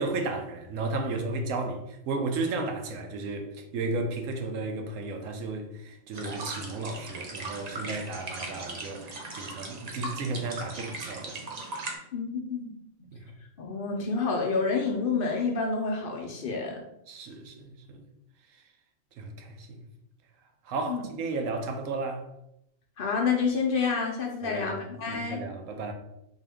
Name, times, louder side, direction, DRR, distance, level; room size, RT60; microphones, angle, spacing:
voice 1, 0.0-11.4 13.1-13.3 17.1-18.1 18.5-18.6 19.2-19.9 20.6-22.3 24.4-25.9, right 3 dB, 90° right, 1.1 m, -34 dB
sound 1, 6.1-11.9, right 2 dB, 40° right, 0.6 m, -38 dB
voice 2, 12.1-12.7 13.6-16.8 20.9-21.0 23.0-25.4, left 4 dB, 55° left, 0.7 m, -28 dB
3.8 x 2.8 x 3.5 m
omnidirectional pair, 1.3 m